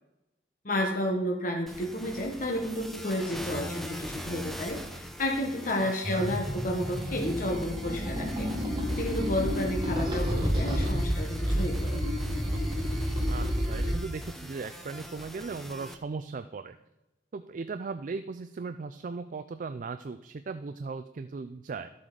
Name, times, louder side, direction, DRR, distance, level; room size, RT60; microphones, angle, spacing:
voice 1, 0.6-8.5 8.9-12.0, left 1 dB, 45° left, 1 dB, 1.2 m, -31 dB
sound 1, 1.7-15.9, equal, ahead, 0.7 m, -43 dB
voice 2, 5.8-6.3 13.3-16.8 17.3-21.9, right 4 dB, 45° right, 10 dB, 0.4 m, -38 dB
sound 2, 6.0-13.9, equal, 25° right, 1.5 m, -30 dB
12.5 x 7.7 x 3.9 m, 0.97 s
head